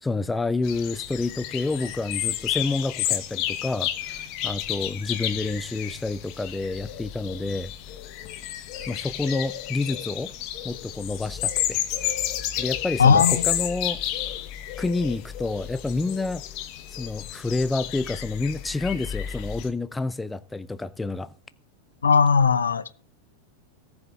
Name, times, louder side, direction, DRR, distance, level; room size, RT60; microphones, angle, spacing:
voice 1, 0.0-3.9 4.4-7.7 8.9-10.3 10.6-12.1 12.6-14.0 14.8-16.4 17.0-21.3, left 3 dB, 10° left, 0.5 m, -29 dB
sound 1, 0.6-19.7, left 12 dB, 40° left, 1.1 m, -31 dB
voice 2, 13.0-13.4 22.0-22.9, left 5 dB, 70° left, 0.6 m, -18 dB
18.5 x 7.1 x 3.5 m
figure-of-eight pair, 90°, 0 cm